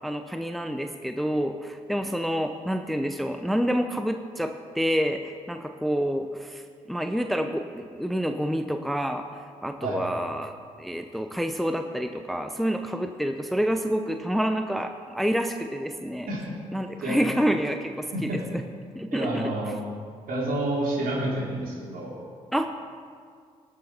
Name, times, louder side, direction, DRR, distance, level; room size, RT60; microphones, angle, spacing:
voice 1, 0.0-6.6 6.9-9.2 9.6-16.3 16.7-18.6 19.0-19.5 22.5-22.7, equal, ahead, 6 dB, 0.8 m, -28 dB
voice 2, 19.1-19.7 20.3-22.2, right 1 dB, 65° right, -4 dB, 3.7 m, -29 dB
19.0 x 6.8 x 4.4 m, 2.1 s
hypercardioid pair, 45°, 16 cm